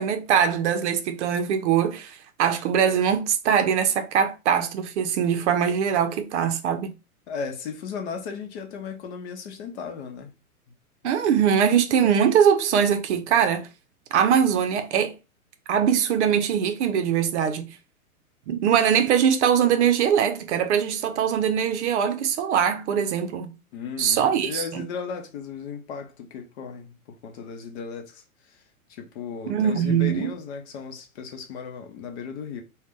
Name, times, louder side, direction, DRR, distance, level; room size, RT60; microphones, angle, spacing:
voice 1, 0.0-6.9 11.0-13.7 14.1-15.1 15.7-17.7 18.5-23.5 24.0-24.8 29.5-30.3, right 8 dB, 50° right, 0.6 m, -22 dB
voice 2, 7.3-10.3 10.7-10.8 23.7-28.6 28.9-32.6, left 6 dB, 50° left, 0.8 m, -36 dB
2.5 x 2.2 x 3.6 m
hypercardioid pair, 120°, 44 cm